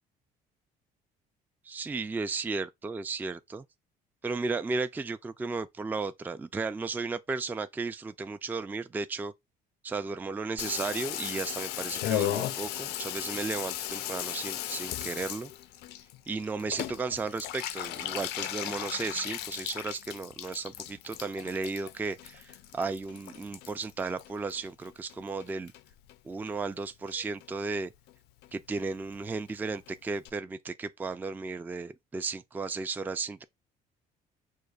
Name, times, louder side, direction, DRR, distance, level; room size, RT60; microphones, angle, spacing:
voice 1, 1.7-3.6 4.2-9.3 9.8-15.5 16.3-25.7 26.2-27.9 28.5-33.4, right 4 dB, 10° right, 0.3 m, -34 dB
Water tap faucet / Bathtub (filling or washing), 10.6-25.1 25.4-26.1 26.5-26.6 26.8-26.9 27.1-27.5 27.7-27.8 28.1-28.2 28.4-28.5 28.8-28.9 29.1-29.2 29.5-29.6 29.9-30.0 30.3-30.4, left 13 dB, 85° left, 0.4 m, -36 dB
6.4 x 2.4 x 2.3 m
cardioid pair, 110°, 17 cm